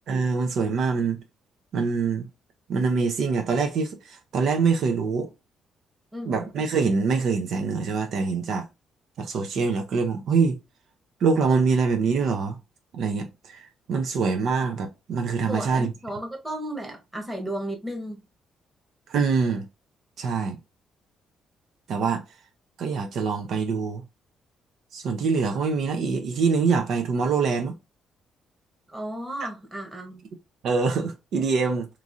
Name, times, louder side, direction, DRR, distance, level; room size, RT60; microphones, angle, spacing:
voice 1, 0.1-1.2 1.7-2.3 2.7-5.3 6.2-8.6 9.2-10.6 11.2-12.6 12.9-15.9 19.1-19.7 20.2-20.6 21.9-22.2 22.8-24.0 24.9-27.8 30.6-31.9, right 5 dB, 70° right, 0.5 m, -24 dB
voice 2, 6.1-6.5 15.5-18.2 28.9-30.2, right 1 dB, 15° right, 1.1 m, -34 dB
3.0 x 2.5 x 2.5 m
cardioid pair, 90°, 0 cm